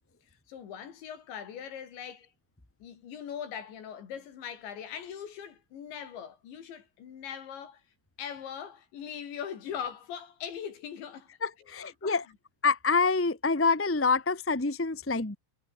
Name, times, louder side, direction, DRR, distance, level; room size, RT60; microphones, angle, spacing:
voice 1, 0.5-2.3 2.8-7.8 8.2-11.3 11.6-12.2, left 8 dB, 80° left, 5.8 m, -41 dB
voice 2, 11.4-12.2 12.6-15.3, left 4 dB, 15° left, 0.4 m, -26 dB
omnidirectional pair, 5.1 m